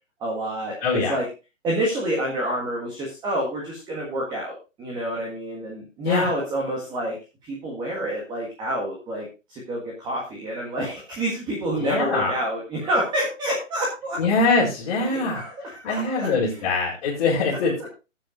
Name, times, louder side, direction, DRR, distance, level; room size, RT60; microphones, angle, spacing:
voice 1, 0.2-1.2 1.6-7.2 7.4-14.2 15.0-16.3 16.6-16.7, right 1 dB, 10° right, -3 dB, 1.9 m, -28 dB
voice 2, 0.8-1.2 6.0-6.3 11.8-12.3 14.2-15.5 15.8-17.9, left 3 dB, 35° left, -8 dB, 4.4 m, -23 dB
16.0 x 9.1 x 2.6 m, 0.29 s
hypercardioid pair, 155°, 38 cm